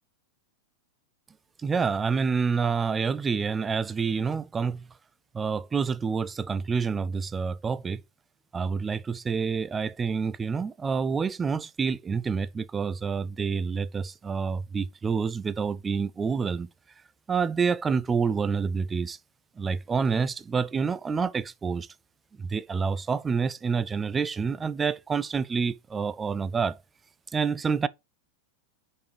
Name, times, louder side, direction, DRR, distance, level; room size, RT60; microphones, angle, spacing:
voice 1, 1.6-4.9 5.3-8.0 8.5-16.7 17.3-19.2 19.6-21.9 22.4-26.8 27.3-27.9, right 5 dB, 15° right, 0.5 m, -28 dB
5.4 x 5.2 x 4.8 m
figure-of-eight pair, 90°, 0 cm